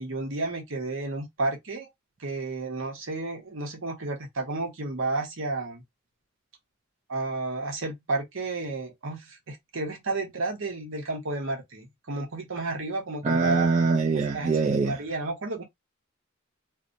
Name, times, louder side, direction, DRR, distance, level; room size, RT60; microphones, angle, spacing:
voice 1, 0.0-1.9 2.2-5.8 7.1-13.7 14.3-15.6, right 2 dB, 60° right, 0.9 m, -32 dB
voice 2, 13.2-15.0, right 4 dB, 35° right, 0.3 m, -23 dB
2.7 x 2.2 x 2.6 m
head